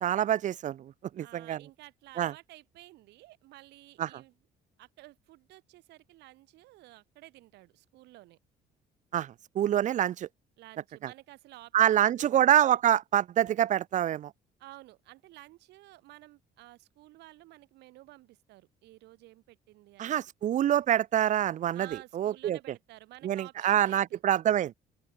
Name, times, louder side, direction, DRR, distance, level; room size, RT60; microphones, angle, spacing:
voice 1, 0.0-1.6 2.2-2.3 4.0-4.1 9.1-10.3 11.7-14.3 20.0-21.9 22.1-22.6 23.2-24.7, right 11 dB, 50° right, 0.5 m, -26 dB
voice 2, 1.2-4.4 4.8-8.4 10.6-12.4 14.6-20.2 21.7-24.2, right 18 dB, 85° right, 7.4 m, -52 dB
open air
cardioid pair, 110°, 17 cm